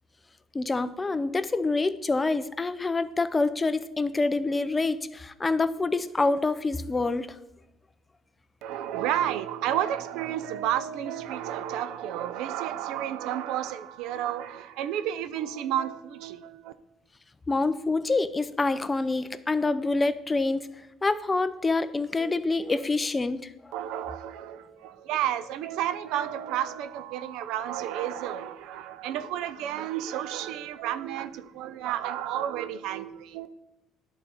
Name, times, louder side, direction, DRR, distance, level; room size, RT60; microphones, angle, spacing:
voice 1, 0.5-7.4 17.5-20.7 21.0-23.7, left 3 dB, 20° left, 0.4 m, -26 dB
voice 2, 8.6-16.7 23.7-33.5, right 11 dB, 80° right, 0.4 m, -31 dB
10.5 x 4.1 x 4.2 m
cardioid pair, 115°, 0 cm